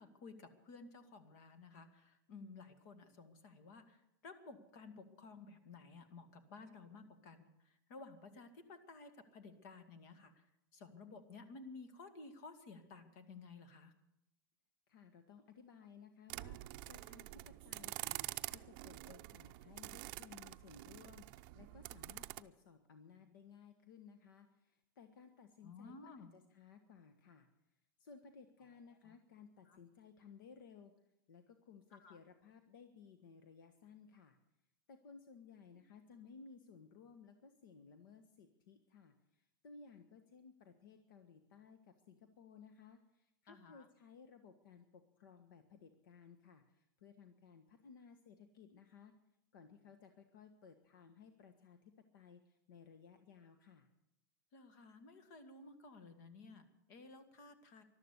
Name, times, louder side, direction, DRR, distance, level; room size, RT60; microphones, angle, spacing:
voice 1, 0.0-10.5 10.7-13.9 25.6-26.3 28.6-28.7 29.0-29.1 29.7-29.8 31.9-32.2 43.5-43.9 54.5-57.8, left 3 dB, 55° left, 11 dB, 2.1 m, -55 dB
voice 2, 14.9-27.5 28.0-30.9 31.3-34.4 34.9-39.1 39.6-49.1 49.5-53.9, left 6 dB, 75° left, 7 dB, 1.5 m, -59 dB
sound 1, 16.3-22.4, right 18 dB, 45° right, 0.6 m, -47 dB
13.5 x 12.0 x 8.2 m, 0.85 s
supercardioid pair, 145°, 11 cm